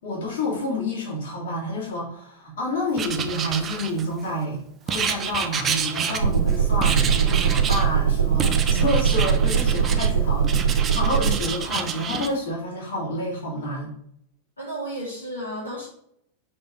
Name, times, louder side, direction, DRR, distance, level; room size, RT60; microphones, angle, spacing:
voice 1, 0.0-13.9, left 1 dB, 60° left, -4 dB, 3.1 m, -29 dB
Writing, 3.0-4.3 4.9-6.5 6.8-7.9 8.4-10.1 10.4-12.3, right 6 dB, 25° right, 0.7 m, -28 dB
sound 1, 6.2-11.3, right 7 dB, 75° right, 1.1 m, -21 dB
voice 2, 14.6-15.9, right 1 dB, 80° left, -6 dB, 2.1 m, -33 dB
5.5 x 5.5 x 4.7 m, 0.70 s
figure-of-eight pair, 90°, 0 cm